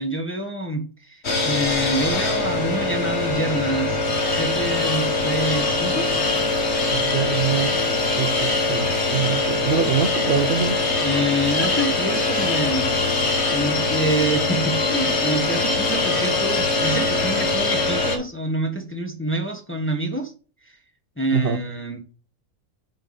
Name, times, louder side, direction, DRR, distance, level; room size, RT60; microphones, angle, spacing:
voice 1, 0.0-4.0 4.3-6.1 11.0-12.9 13.5-20.3 20.6-20.7 21.2-22.0, right 1 dB, 10° left, 0.9 m, -27 dB
sound 1, 1.2-18.2, left 2 dB, 45° left, 1.6 m, -22 dB
voice 2, 6.9-7.8 8.2-10.8 21.3-21.6, right 7 dB, 55° right, 0.7 m, -24 dB
6.3 x 5.2 x 4.0 m
omnidirectional pair, 1.6 m